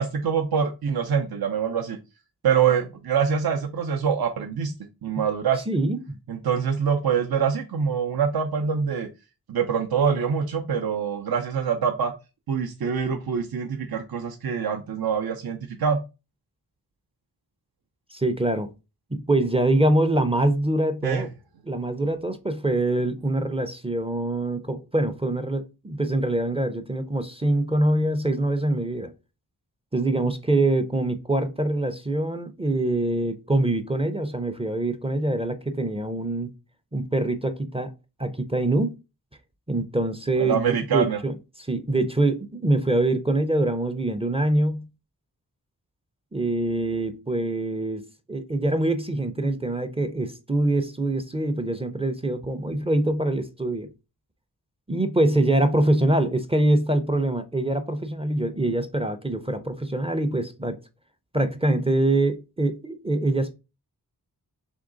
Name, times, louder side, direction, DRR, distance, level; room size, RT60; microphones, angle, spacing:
voice 1, 0.0-2.0 2.4-4.7 5.0-5.6 6.3-9.1 9.5-12.1 12.5-16.0 21.0-21.3 40.4-41.2, right 7 dB, 70° right, 0.6 m, -25 dB
voice 2, 5.7-6.2 18.1-18.7 19.1-21.3 21.7-29.1 29.9-36.5 36.9-37.9 38.2-38.9 39.7-41.3 41.7-44.9 46.3-48.0 48.3-53.9 54.9-60.8 61.3-63.5, right 1 dB, 15° right, 0.4 m, -24 dB
3.6 x 3.0 x 3.7 m
wide cardioid pair, 70°, 39 cm